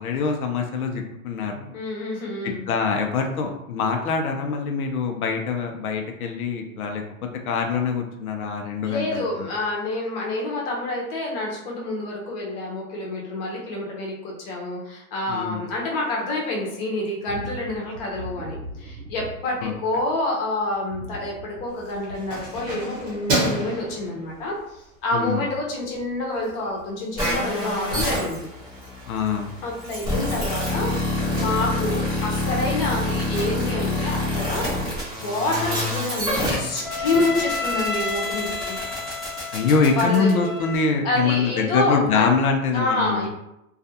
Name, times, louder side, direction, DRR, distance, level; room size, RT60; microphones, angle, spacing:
voice 1, 0.0-1.8 2.4-7.0 7.5-9.5 15.3-15.7 19.6-19.7 25.1-25.4 29.1-29.5 39.5-43.3, left 5 dB, 85° left, 3 dB, 0.7 m, -24 dB
voice 2, 1.7-2.6 8.8-28.4 29.6-34.9 35.2-38.8 40.0-40.5 41.0-42.3 42.7-43.3, left 2 dB, 30° left, -2 dB, 0.7 m, -28 dB
sound 1, 17.3-20.3 20.7-22.4 22.9-23.1, right 2 dB, 85° right, 0.6 m, -39 dB
Keys jangling, 21.7-24.8 25.2-25.5 25.8-26.5 26.8-26.9 27.1-27.2 27.4-38.2 38.5-38.6, right 1 dB, 20° right, 0.9 m, -33 dB
sound 2, 27.2-40.7, left 2 dB, ahead, 0.4 m, -27 dB
2.4 x 2.4 x 2.7 m, 0.85 s
hypercardioid pair, 145°, 43 cm